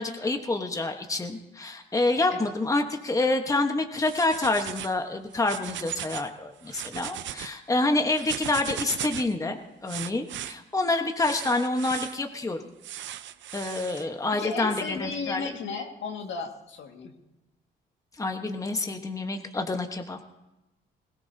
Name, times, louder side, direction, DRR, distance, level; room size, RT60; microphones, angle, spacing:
voice 1, 0.0-12.6 13.5-15.5 18.2-20.2, left 2 dB, 15° left, 5 dB, 1.2 m, -27 dB
sound 1, 3.9-5.0 5.3-6.3 6.6-7.5 8.1-9.3 9.9-10.5 11.2-12.2 12.8-14.0, right 11 dB, 70° right, 0.6 m, -37 dB
voice 2, 14.0-17.1, left 5 dB, 70° left, 3 dB, 1.9 m, -35 dB
21.5 x 16.5 x 2.8 m, 0.98 s
cardioid pair, 90°, 20 cm